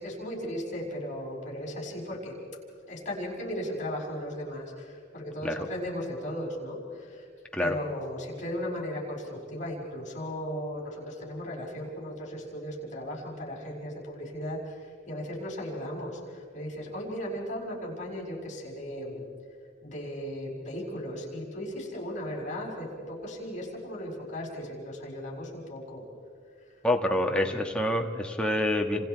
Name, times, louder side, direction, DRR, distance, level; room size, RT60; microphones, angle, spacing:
voice 1, 0.0-2.4 2.9-7.3 7.6-19.2 19.8-26.1 27.2-27.6, equal, 40° left, -2 dB, 6.2 m, -36 dB
voice 2, 26.8-29.1, left 1 dB, 5° left, 2 dB, 1.6 m, -27 dB
29.5 x 26.5 x 4.7 m, 2.2 s
head